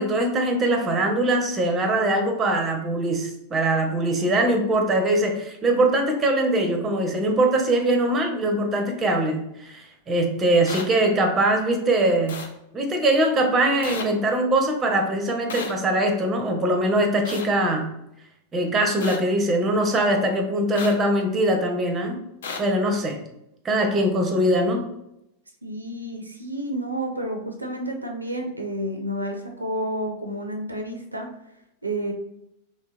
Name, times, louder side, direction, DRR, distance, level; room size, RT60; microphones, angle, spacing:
voice 1, 0.0-12.4 12.7-17.9 18.5-22.2 22.6-23.2 23.6-24.9, right 1 dB, 20° right, 4 dB, 0.5 m, -22 dB
sound 1, 10.7-10.8 12.3-12.5 13.8-14.0 15.5-15.7 17.2-17.5 19.0-19.2 20.8-20.9 22.4-22.6, left 5 dB, 60° left, 0.4 m, -32 dB
voice 2, 25.6-31.3 31.8-32.1, right 1 dB, 85° right, 3 dB, 0.4 m, -30 dB
3.0 x 2.7 x 2.2 m, 0.82 s
figure-of-eight pair, 90°, 0 cm